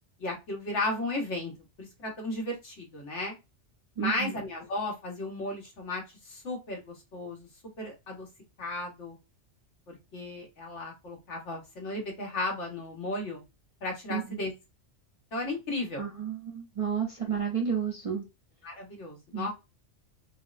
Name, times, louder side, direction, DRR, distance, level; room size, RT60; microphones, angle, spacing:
voice 1, 0.2-1.5 1.8-3.4 4.0-7.5 7.8-8.3 8.6-9.2 9.9-13.4 13.8-14.5 15.3-16.0 18.6-19.5, left 2 dB, 80° left, 0 dB, 1.5 m, -35 dB
voice 2, 4.0-4.3 14.1-14.4 16.0-18.2 19.3-19.5, right 7 dB, 45° right, 1 dB, 0.4 m, -31 dB
4.1 x 2.0 x 2.4 m, 0.24 s
omnidirectional pair, 1.2 m